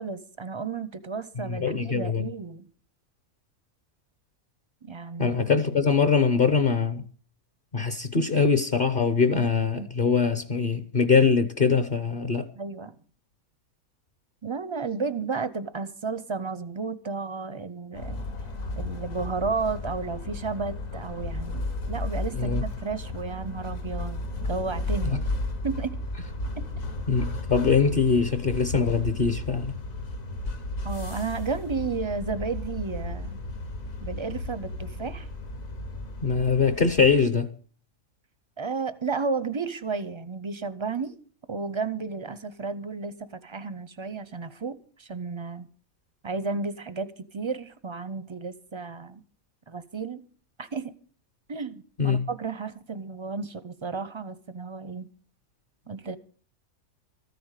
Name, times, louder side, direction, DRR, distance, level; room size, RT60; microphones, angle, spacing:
voice 1, 0.0-2.7 4.8-5.4 12.6-12.9 14.4-18.2 18.8-25.3 25.6-26.0 26.6-26.7 30.8-33.4 34.0-35.3 38.6-41.2 41.5-45.7 46.2-47.1 47.3-49.2 49.7-50.2 50.6-51.0 51.5-55.1 55.9-56.2, right 4 dB, 40° right, 0.4 m, -33 dB
voice 2, 1.4-2.3 5.2-7.0 7.7-12.5 22.3-22.6 25.1-25.2 27.1-29.7 36.2-37.5 52.0-52.2, left 5 dB, 45° left, 0.8 m, -23 dB
sound 1, 17.9-37.2, left 2 dB, 70° left, 1.9 m, -34 dB
14.0 x 9.4 x 6.6 m
omnidirectional pair, 1.5 m